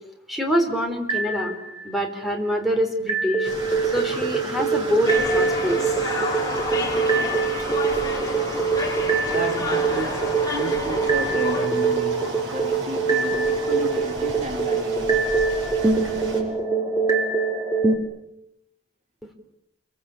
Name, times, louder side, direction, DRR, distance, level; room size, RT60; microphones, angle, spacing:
voice 1, 0.3-1.6 1.8-3.5 3.8-5.8, equal, ahead, 4.2 m, -25 dB
sound 1, 1.1-2.0 3.1-18.0, right 4 dB, 20° right, 3.3 m, -24 dB
sound 2, 3.4-16.4, right 1 dB, 65° right, 7.6 m, -37 dB
sound 3, 5.1-11.7, left 2 dB, 20° left, 3.9 m, -30 dB
voice 2, 9.3-15.3, right 1 dB, 35° right, 3.2 m, -32 dB
29.0 x 22.5 x 8.6 m
head